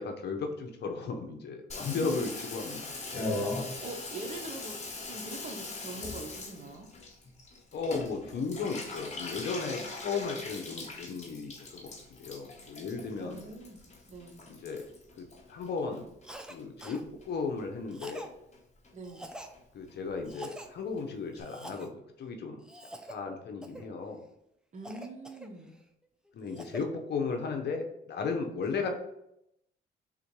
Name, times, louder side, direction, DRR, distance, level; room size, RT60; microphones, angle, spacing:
voice 1, 0.0-3.5 7.7-13.4 14.5-14.9 15.2-16.1 16.5-18.3 19.7-22.6 23.1-24.2 26.3-28.9, left 4 dB, 55° left, 3 dB, 0.7 m, -35 dB
Water tap faucet / Bathtub (filling or washing), 1.7-16.2 16.5-17.3 17.6-17.7 17.9-18.0 18.2-18.6 18.8-18.9 19.2-19.3 19.5-19.6 19.9-20.0 20.2-20.3 20.6-20.7 21.0-21.1 21.4-21.5, left 2 dB, 35° left, 1.3 m, -40 dB
voice 2, 1.9-2.2 3.7-6.9 13.2-13.8 14.1-14.4 18.9-19.3 24.7-25.7 28.6-28.8, right 2 dB, 35° right, 3 dB, 0.8 m, -43 dB
Cough, 16.2-16.6 16.8-17.0 17.9-18.3 19.0-19.5 20.3-20.7 21.4-21.9 22.6-23.2 23.6-23.9 24.8-25.8 26.3-26.9, right 1 dB, 5° right, 0.4 m, -45 dB
3.6 x 2.5 x 4.6 m, 0.80 s
cardioid pair, 90°, 20 cm